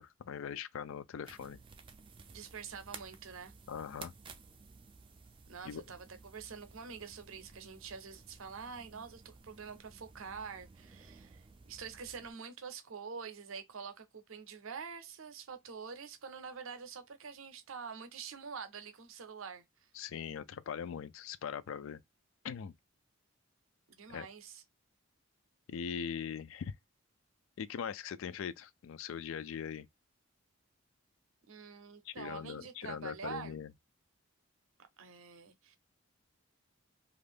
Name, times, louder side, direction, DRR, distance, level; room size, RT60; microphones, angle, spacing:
voice 1, 0.0-1.6 3.7-4.1 5.6-5.8 20.0-22.0 22.4-22.7 24.1-24.3 25.7-26.7 27.6-29.9 32.1-33.7, left 7 dB, 70° left, 0.3 m, -41 dB
sound 1, 1.2-12.3, right 4 dB, 25° right, 0.3 m, -55 dB
voice 2, 2.3-3.5 5.5-19.9 23.9-24.6 31.5-33.6 35.0-35.8, right 6 dB, 70° right, 0.6 m, -46 dB
2.5 x 2.4 x 3.4 m
head